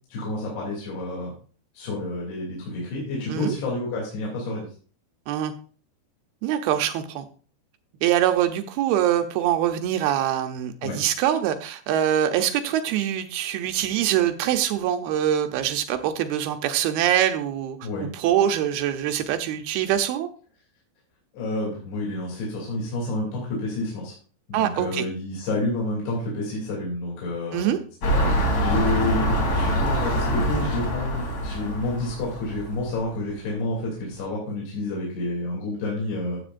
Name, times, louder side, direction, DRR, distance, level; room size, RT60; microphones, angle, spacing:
voice 1, 0.1-1.3 1.7-4.7 10.8-11.0 17.8-18.1 21.3-24.1 24.5-27.8 28.1-36.4, left 2 dB, 65° left, -4 dB, 4.8 m, -29 dB
voice 2, 6.4-7.3 8.0-20.3 24.5-25.0 27.5-27.8, right 11 dB, 80° right, 8 dB, 2.3 m, -24 dB
sound 1, 28.0-33.0 33.6-33.7, equal, 45° left, 3.0 m, -25 dB
15.0 x 8.3 x 2.6 m, 0.41 s
omnidirectional pair, 5.1 m